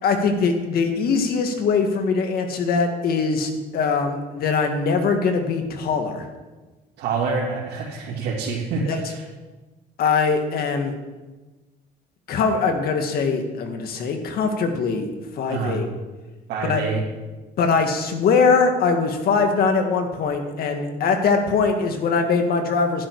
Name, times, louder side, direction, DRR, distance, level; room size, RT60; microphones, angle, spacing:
voice 1, 0.0-6.3 8.9-9.0 10.0-10.9 12.3-15.1 15.4-15.9 16.6-16.8 17.6-23.1, left 5 dB, 65° left, 5 dB, 1.9 m, -22 dB
voice 2, 7.0-9.2 15.5-15.8 16.5-17.0, right 4 dB, 80° right, -6 dB, 2.6 m, -26 dB
11.5 x 10.5 x 4.7 m, 1.2 s
cardioid pair, 110°, 17 cm